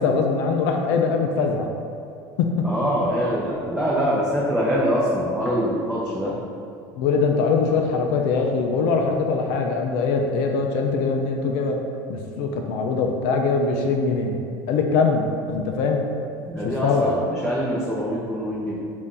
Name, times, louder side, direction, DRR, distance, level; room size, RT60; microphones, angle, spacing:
voice 1, 0.0-1.7 2.4-2.7 6.9-11.8 12.1-14.4 14.7-16.0 16.6-17.1, left 4 dB, 70° left, 2 dB, 0.4 m, -22 dB
voice 2, 2.6-6.4 16.5-18.7, equal, 5° right, -7 dB, 0.6 m, -24 dB
4.1 x 2.5 x 3.6 m, 2.5 s
supercardioid pair, 110°, 11 cm